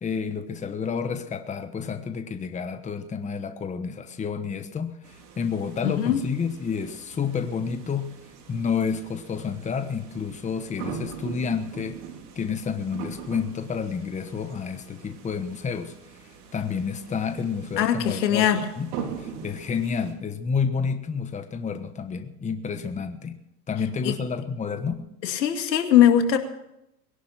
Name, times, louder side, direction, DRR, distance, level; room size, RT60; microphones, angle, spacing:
voice 1, 0.0-8.1 8.5-12.0 12.3-15.9 16.2-18.9 19.2-23.4 23.7-25.0, left 6 dB, 15° left, 8 dB, 1.2 m, -30 dB
sound 1, 5.0-20.1, right 6 dB, 70° right, 4.0 m, -42 dB
voice 2, 5.8-6.2 17.8-18.6 24.0-24.1 25.2-26.4, left 10 dB, 90° left, 6 dB, 2.4 m, -20 dB
21.0 x 11.5 x 5.9 m, 0.83 s
supercardioid pair, 125°, 49 cm